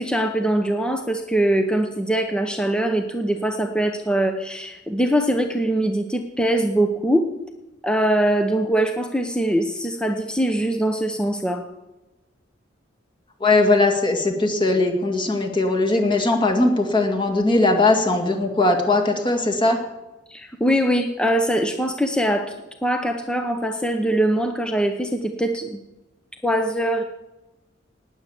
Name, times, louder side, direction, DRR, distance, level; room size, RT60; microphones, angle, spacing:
voice 1, 0.0-7.3 7.8-11.6 20.3-22.5 22.8-25.8 26.4-27.0, right 1 dB, 5° left, 5 dB, 0.9 m, -22 dB
voice 2, 13.4-19.8, left 2 dB, 25° left, 2 dB, 2.1 m, -19 dB
19.0 x 8.2 x 7.2 m, 1.0 s
head